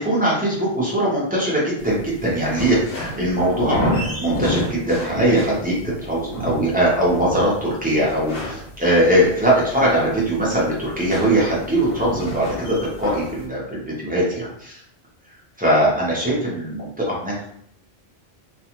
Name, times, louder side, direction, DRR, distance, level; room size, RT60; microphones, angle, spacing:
voice 1, 0.0-5.7 6.0-14.8 15.6-17.5, right 1 dB, 10° right, -6 dB, 0.8 m, -21 dB
sound 1, 1.8-13.4, left 1 dB, 65° left, 0.9 m, -30 dB
2.5 x 2.4 x 2.9 m, 0.67 s
omnidirectional pair, 1.1 m